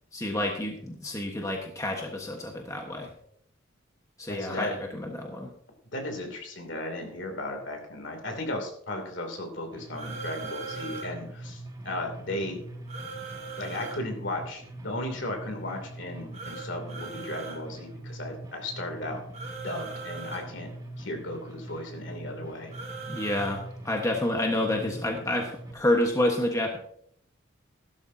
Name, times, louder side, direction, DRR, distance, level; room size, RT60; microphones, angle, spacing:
voice 1, 0.1-3.1 4.2-5.5 23.1-26.8, left 1 dB, 15° left, 1 dB, 1.3 m, -29 dB
voice 2, 4.4-4.7 5.9-12.6 13.6-19.2 19.6-20.7 21.0-22.7 23.0-23.2, left 1 dB, 60° left, 4 dB, 2.9 m, -35 dB
sound 1, 9.7-25.7, right 1 dB, 20° right, 2.0 m, -43 dB
sound 2, 9.9-11.1 12.9-14.0 16.3-17.6 19.3-20.4 22.7-23.5, right 4 dB, 35° right, 4.5 m, -39 dB
15.5 x 12.5 x 2.8 m, 0.65 s
head